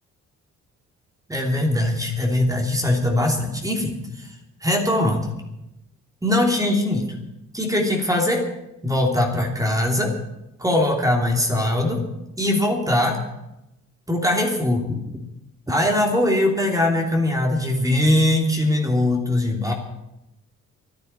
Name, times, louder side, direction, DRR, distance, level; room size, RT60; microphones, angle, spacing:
voice 1, 1.3-4.3 4.6-5.3 6.2-7.1 7.5-8.5 8.8-10.2 10.6-12.0 12.4-13.2 14.1-15.0 15.7-19.7, left 1 dB, 10° right, 1 dB, 3.0 m, -21 dB
11.0 x 10.5 x 10.0 m, 0.91 s
cardioid pair, 90°, 30 cm